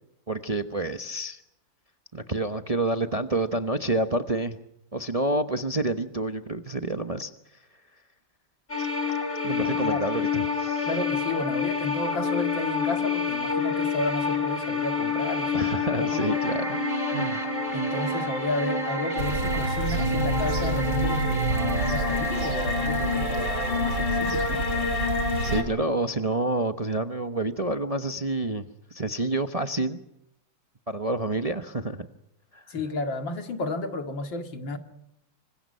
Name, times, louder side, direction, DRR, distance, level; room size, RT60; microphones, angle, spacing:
voice 1, 0.3-1.4 2.1-4.6 4.9-7.3 8.8-8.9 9.4-10.9 15.5-16.8 17.1-17.4 25.4-30.0 30.9-32.1 32.5-32.7, right 2 dB, 25° right, 0.8 m, -28 dB
sound 1, 8.7-25.6, left 3 dB, 30° left, 4.6 m, -28 dB
voice 2, 9.7-10.1 10.9-16.3 17.7-24.7 32.7-34.8, left 2 dB, 80° left, 2.9 m, -32 dB
sound 2, 19.2-25.6, right 2 dB, 75° right, 3.3 m, -29 dB
27.0 x 25.0 x 5.5 m
omnidirectional pair, 2.0 m